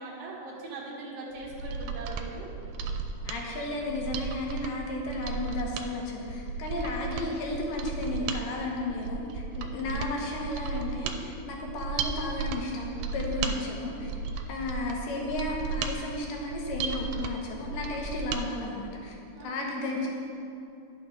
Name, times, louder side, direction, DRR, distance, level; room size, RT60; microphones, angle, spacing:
voice 1, 0.0-2.5 9.8-10.2 19.3-20.0, right 2 dB, 60° right, -3 dB, 1.9 m, -41 dB
Mechanisms, 1.4-18.4 18.8-18.9, right 5 dB, 90° right, 2.3 m, -35 dB
voice 2, 3.2-14.1 14.5-19.1 19.4-20.1, left 2 dB, 75° left, -1 dB, 2.6 m, -33 dB
11.0 x 6.0 x 3.8 m, 2.6 s
omnidirectional pair, 3.9 m